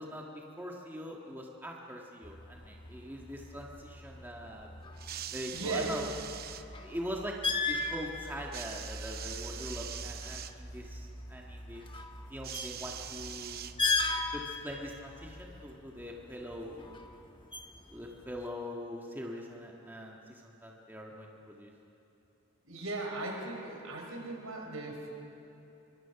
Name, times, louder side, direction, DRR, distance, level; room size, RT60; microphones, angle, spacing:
voice 1, 0.0-4.7 5.3-6.1 6.8-7.4 7.7-11.9 12.3-13.6 14.3-17.0 17.9-21.7, equal, 10° right, -1 dB, 1.6 m, -42 dB
sound 1, 2.2-18.5, left 3 dB, 25° left, 1.2 m, -39 dB
sound 2, 5.0-6.7 8.5-10.6 12.4-14.1 15.1-15.2, right 10 dB, 45° right, 0.7 m, -43 dB
voice 2, 5.5-6.0 22.6-25.1, right 2 dB, 75° right, 1 dB, 4.7 m, -37 dB
25.0 x 24.0 x 5.9 m, 2.9 s
head